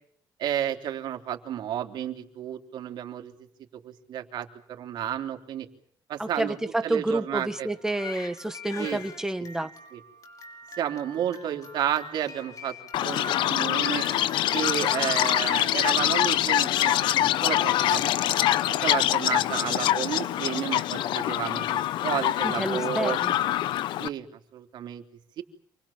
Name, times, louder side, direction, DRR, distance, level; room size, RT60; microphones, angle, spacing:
voice 1, 0.4-3.3 3.8-5.7 6.1-6.6 6.8-7.7 8.8-9.0 9.9-10.0 10.8-12.7 13.0-14.0 14.5-18.1 18.7-23.2 24.0-24.3 24.5-25.0 25.4-25.5, right 10 dB, 70° right, 5 dB, 3.5 m, -32 dB
voice 2, 6.2-9.7 22.4-23.4, right 2 dB, 5° right, 10 dB, 1.6 m, -29 dB
Crying sobbing, 7.6-15.7, left 2 dB, 45° left, 5.1 m, -43 dB
Chirp tweet, 12.9-24.1, left 13 dB, 90° left, 1.0 m, -25 dB
28.0 x 22.0 x 7.4 m, 0.63 s
cardioid pair, 130°, 8 cm